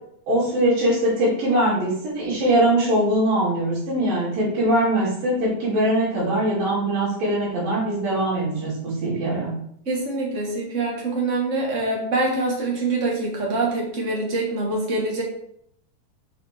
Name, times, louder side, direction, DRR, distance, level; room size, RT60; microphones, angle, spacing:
voice 1, 0.3-9.5, right 1 dB, 75° right, -9 dB, 4.3 m, -22 dB
voice 2, 9.8-15.2, right 2 dB, 35° right, -2 dB, 1.2 m, -25 dB
7.5 x 4.4 x 4.4 m, 0.70 s
omnidirectional pair, 4.1 m